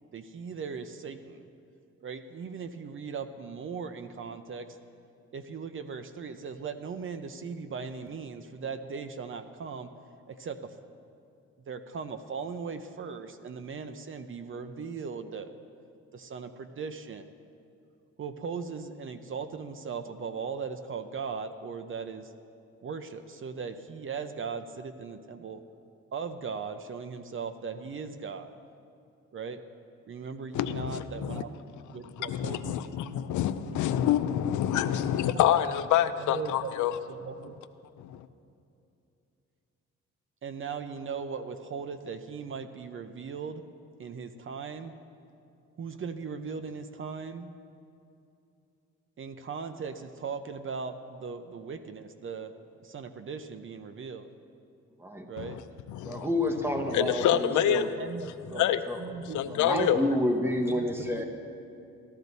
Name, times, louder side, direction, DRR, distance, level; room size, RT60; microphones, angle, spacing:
voice 1, 0.1-1.5 2.0-4.8 5.3-9.9 10.3-10.8 11.7-15.5 16.1-17.4 18.2-22.3 22.8-25.6 26.1-28.5 29.3-29.6 30.1-31.5 31.9-33.2 33.6-33.8 35.0-35.1 35.4-35.6 36.2-36.7 37.1-37.6 40.4-43.6 44.0-44.9 45.8-47.5 49.2-52.5 52.8-54.3 55.3-55.6 57.3-60.1 60.7-61.2, right 5 dB, 45° right, 9 dB, 0.6 m, -38 dB
voice 2, 30.5-31.4 32.2-37.0 38.0-38.3 55.4-55.6 55.9-56.3 56.9-57.9 58.6-58.8 59.2-60.0, left 11 dB, 75° left, 11 dB, 0.6 m, -27 dB
voice 3, 56.0-57.9 58.5-59.0 59.5-61.2, left 1 dB, 10° right, 4 dB, 1.2 m, -29 dB
14.5 x 11.5 x 4.1 m, 2.6 s
cardioid pair, 90°, 30 cm